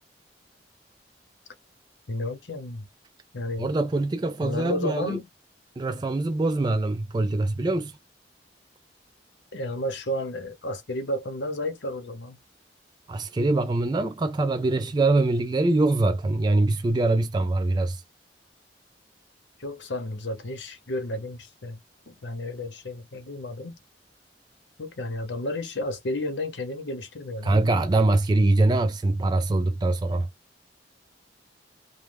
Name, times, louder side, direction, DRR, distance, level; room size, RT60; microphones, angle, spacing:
voice 1, 2.1-2.9 3.3-3.7 4.4-5.3 9.5-12.4 19.6-21.8 22.1-23.8 24.8-27.6, left 1 dB, 85° left, 0.9 m, -32 dB
voice 2, 3.6-5.2 5.8-8.0 13.1-18.0 27.4-30.3, right 2 dB, 25° right, 0.3 m, -23 dB
3.1 x 2.1 x 3.4 m
head